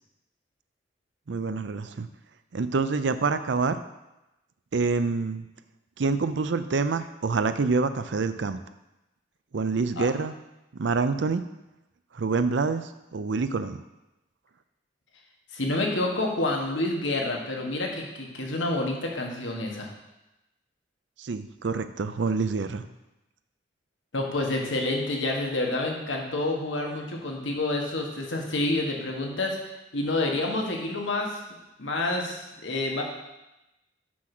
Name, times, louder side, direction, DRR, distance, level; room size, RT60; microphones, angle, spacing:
voice 1, 1.3-2.1 2.5-3.8 4.7-5.5 6.0-8.6 9.5-10.3 10.8-11.4 12.1-13.8 21.2-22.8, right 4 dB, 70° right, 11 dB, 0.5 m, -26 dB
voice 2, 15.5-19.9 24.1-29.6 29.9-31.4 31.8-33.0, left 2 dB, 85° left, 0 dB, 1.5 m, -28 dB
6.2 x 6.1 x 6.0 m, 0.96 s
head